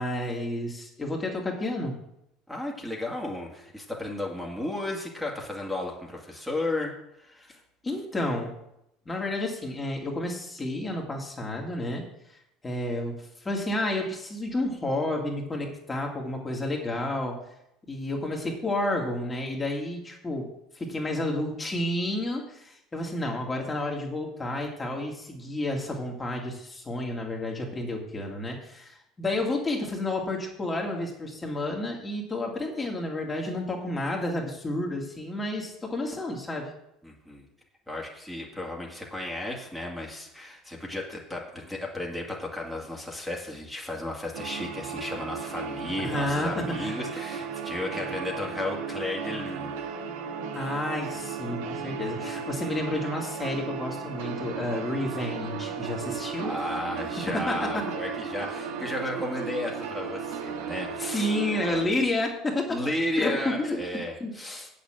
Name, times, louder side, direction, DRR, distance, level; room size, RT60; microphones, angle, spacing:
voice 1, 0.0-2.0 7.8-8.5 9.1-12.0 12.6-17.4 17.9-20.5 20.8-36.7 46.0-47.0 50.5-56.5 57.5-57.6 61.0-62.8 63.2-63.8 64.2-64.3, left 1 dB, 15° left, 0 dB, 2.2 m, -30 dB
voice 2, 2.5-7.6 37.0-37.4 37.9-49.9 56.4-61.8 62.7-64.7, left 1 dB, ahead, -3 dB, 2.2 m, -34 dB
sound 1, 44.3-61.9, right 6 dB, 85° right, 1.4 m, -35 dB
7.9 x 6.8 x 7.6 m, 0.81 s
supercardioid pair, 120°, 0 cm